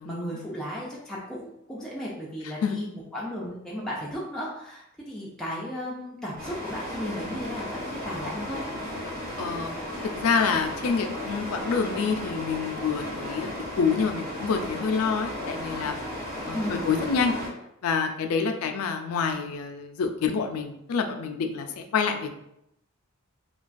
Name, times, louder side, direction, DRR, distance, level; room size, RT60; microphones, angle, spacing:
voice 1, 0.0-8.6 16.5-16.9, equal, 5° left, -6 dB, 0.3 m, -35 dB
sound 1, 6.4-17.5, left 1 dB, 80° right, 1.1 m, -35 dB
voice 2, 9.4-9.7 10.1-15.9 16.5-17.3 17.8-22.3, left 5 dB, 80° left, 5 dB, 0.3 m, -27 dB
2.3 x 2.2 x 2.4 m, 0.80 s
head